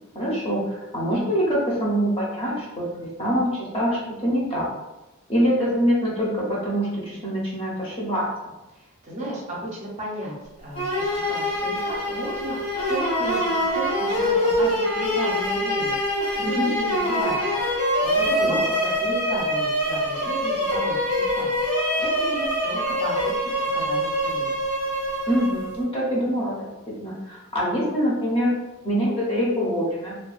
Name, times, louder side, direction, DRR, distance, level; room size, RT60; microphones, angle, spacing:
voice 1, 0.1-0.6 0.9-4.7 5.3-8.3 16.4-16.7 18.3-18.8 25.3-26.7 27.0-28.5 28.8-30.2, equal, 25° left, -6 dB, 0.6 m, -24 dB
voice 2, 8.7-10.3 10.6-17.6 18.0-21.6 22.0-24.5, right 1 dB, 30° right, -5 dB, 0.6 m, -34 dB
sound 1, 10.8-25.8, equal, 80° left, 0.9 m, -24 dB
2.3 x 2.2 x 2.4 m, 1.0 s
head